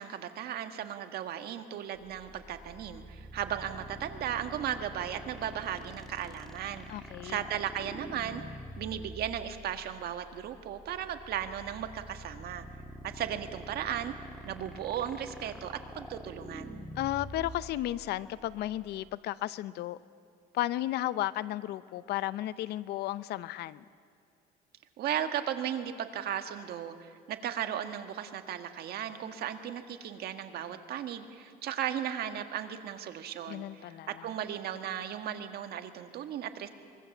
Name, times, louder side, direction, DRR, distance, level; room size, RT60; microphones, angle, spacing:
voice 1, 0.0-8.4 8.8-12.6 13.1-14.1 14.4-16.8 25.0-33.8 34.2-36.7, right 10 dB, 70° right, 1.6 m, -36 dB
sound 1, 1.9-19.1, equal, 5° left, 1.7 m, -46 dB
voice 2, 6.9-7.4 17.0-20.0 20.5-23.8 33.5-34.3, left 14 dB, 75° left, 0.7 m, -34 dB
24.0 x 22.5 x 7.2 m
cardioid pair, 110°, 17 cm